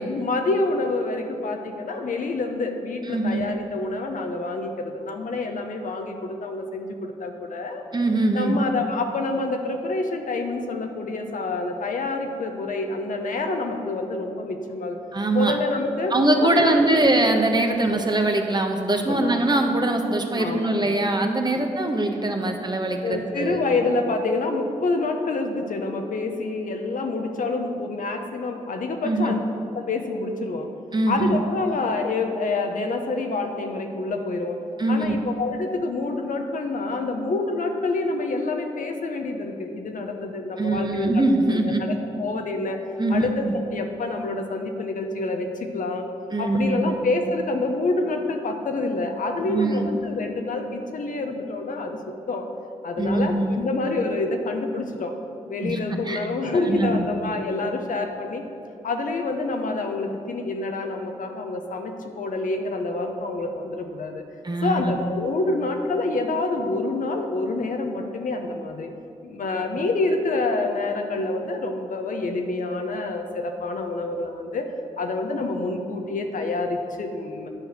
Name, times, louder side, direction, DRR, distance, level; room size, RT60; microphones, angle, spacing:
voice 1, 0.1-7.8 8.3-15.0 15.3-17.1 17.7-18.1 19.1-19.3 20.3-20.8 21.5-21.6 22.2-22.3 23.0-29.4 29.7-30.7 31.1-34.6 34.9-41.2 41.5-42.8 43.1-45.5 45.7-46.0 46.4-52.5 52.8-55.1 55.5-58.4 58.8-64.2 64.6-68.9 69.2-74.7 75.0-77.5, left 3 dB, 65° left, 4 dB, 1.0 m, -27 dB
voice 2, 3.1-3.4 7.9-8.6 15.1-15.6 16.1-23.6 29.0-29.3 30.9-31.4 34.8-35.2 40.6-41.8 43.0-43.5 46.3-47.0 49.5-49.9 53.0-53.6 55.6-55.8 56.1-56.2 56.7-57.0 64.4-64.9, right 2 dB, 30° right, 3 dB, 1.2 m, -22 dB
9.6 x 4.8 x 6.4 m, 2.8 s
supercardioid pair, 40°, 15 cm